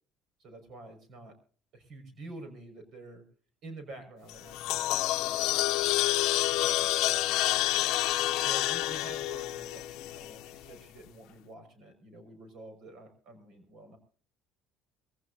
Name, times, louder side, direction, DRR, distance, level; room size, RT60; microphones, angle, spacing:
voice 1, 0.4-1.3 1.7-3.2 3.6-5.6 6.5-7.9 8.4-14.0, right 2 dB, 65° right, 7 dB, 5.8 m, -48 dB
sound 1, 4.3-10.6, left 16 dB, 75° left, 0.7 m, -28 dB
23.5 x 16.0 x 2.8 m, 0.43 s
cardioid pair, 105°, 0 cm